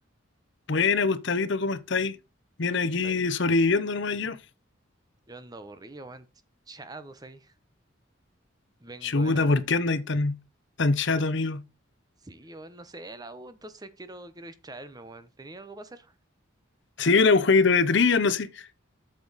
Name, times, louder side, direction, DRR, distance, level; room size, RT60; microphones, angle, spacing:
voice 1, 0.7-2.2 2.6-4.4 9.0-10.4 10.8-11.6 17.0-18.7, left 4 dB, 60° left, 0.8 m, -23 dB
voice 2, 5.3-6.3 6.7-7.5 8.8-9.6 12.2-16.1, right 2 dB, 20° right, 0.8 m, -44 dB
8.4 x 6.7 x 4.0 m
head